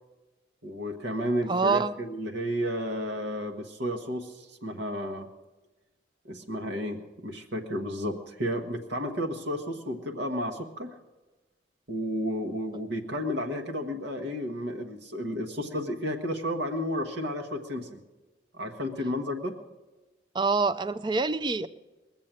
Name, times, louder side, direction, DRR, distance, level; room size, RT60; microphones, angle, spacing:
voice 1, 0.6-5.3 6.2-10.9 11.9-18.0 18.5-19.6, equal, 70° right, 3 dB, 1.2 m, -32 dB
voice 2, 1.5-1.9 20.3-21.7, right 4 dB, 25° right, 13 dB, 0.4 m, -26 dB
20.5 x 7.5 x 8.8 m, 1.2 s
head